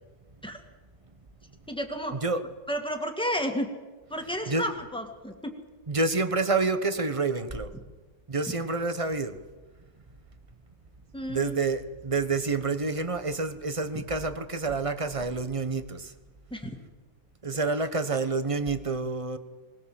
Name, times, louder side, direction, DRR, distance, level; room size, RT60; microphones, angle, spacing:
voice 1, 1.7-2.2 2.7-3.7 4.1-5.5 11.1-11.6 16.5-16.7, equal, 5° left, 3 dB, 2.1 m, -32 dB
voice 2, 5.9-7.7 8.3-9.4 11.3-16.1 17.4-19.4, right 3 dB, 25° right, 10 dB, 1.0 m, -28 dB
20.5 x 20.5 x 7.7 m, 1.3 s
omnidirectional pair, 1.8 m